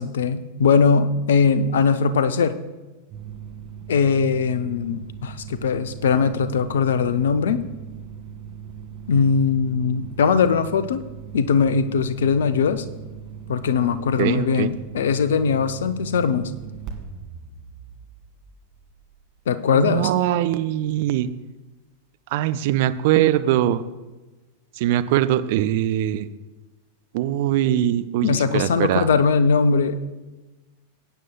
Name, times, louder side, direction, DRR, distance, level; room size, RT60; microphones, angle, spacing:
voice 1, 0.0-2.6 3.9-7.6 9.1-11.0 11.3-12.8 13.5-16.5 19.5-20.1 28.2-30.0, left 5 dB, 60° left, 12 dB, 0.5 m, -20 dB
sound 1, 3.1-19.5, right 7 dB, 35° right, 1.8 m, -39 dB
voice 2, 14.2-14.7 19.7-21.3 22.3-23.8 24.8-26.3 27.1-29.1, right 12 dB, 50° right, 12 dB, 0.4 m, -22 dB
18.0 x 8.9 x 2.2 m, 1.2 s
figure-of-eight pair, 90°, 0 cm